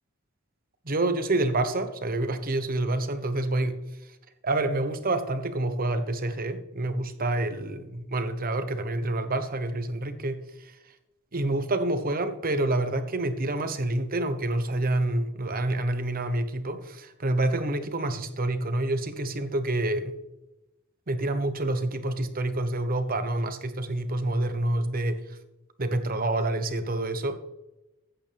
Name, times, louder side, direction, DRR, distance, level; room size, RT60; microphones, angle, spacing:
voice 1, 0.8-3.8 4.4-10.8 11.3-20.1 21.1-25.4 25.8-27.4, right 2 dB, 45° right, 9 dB, 1.1 m, -28 dB
14.5 x 9.3 x 3.5 m, 0.94 s
head